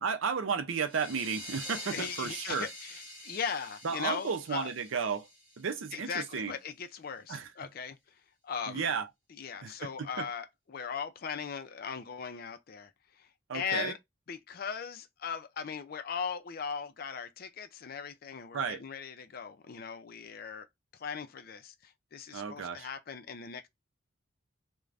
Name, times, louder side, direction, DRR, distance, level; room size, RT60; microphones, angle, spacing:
voice 1, 0.0-2.7 3.8-5.3 5.6-6.5 7.3-7.5 8.7-9.1 9.6-9.7 10.0-10.3 13.5-13.9 18.5-18.8 22.3-22.9, right 6 dB, 75° right, 0.5 m, -33 dB
sound 1, 0.9-6.2, equal, 15° right, 1.1 m, -45 dB
voice 2, 1.8-4.7 5.9-8.2 8.4-8.9 9.4-13.3 13.5-14.0 14.3-20.7 20.9-23.7, left 6 dB, 50° left, 0.4 m, -39 dB
2.5 x 2.1 x 3.2 m
head